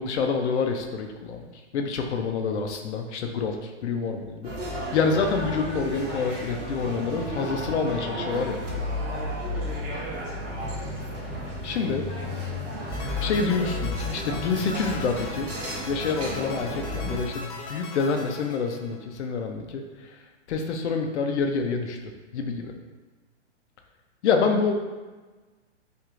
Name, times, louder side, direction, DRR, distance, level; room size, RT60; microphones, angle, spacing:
voice 1, 0.0-1.5 1.7-8.6 11.6-12.1 13.2-15.5 15.9-19.8 20.5-22.0 22.3-22.7 24.2-24.8, left 5 dB, 70° left, 4 dB, 0.6 m, -27 dB
sound 1, 4.4-17.2, left 1 dB, 30° right, 1.0 m, -33 dB
sound 2, 8.3-11.4, right 3 dB, 75° right, 1.3 m, -40 dB
sound 3, 12.9-19.2, left 3 dB, 25° left, 0.5 m, -40 dB
4.5 x 2.6 x 2.5 m, 1.3 s
hypercardioid pair, 140°, 36 cm